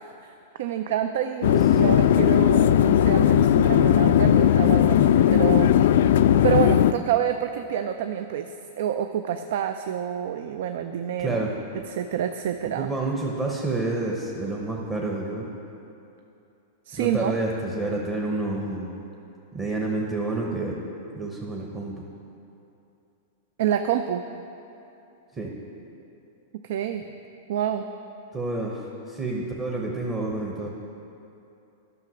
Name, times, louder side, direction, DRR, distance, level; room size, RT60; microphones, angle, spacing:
voice 1, 0.1-5.8 6.4-11.4 11.9-12.9 16.9-17.3 23.6-24.3 26.6-27.0 27.5-27.9, right 9 dB, 70° right, 8 dB, 0.4 m, -27 dB
sound 1, 1.4-6.9, left 10 dB, 70° left, 0.3 m, -18 dB
voice 2, 11.2-11.5 12.8-15.5 16.9-18.9 19.5-20.8 21.1-22.0 25.3-25.5 28.3-30.7, right 2 dB, 15° right, -2 dB, 0.9 m, -29 dB
10.5 x 5.8 x 6.2 m, 2.8 s
supercardioid pair, 140°, 0 cm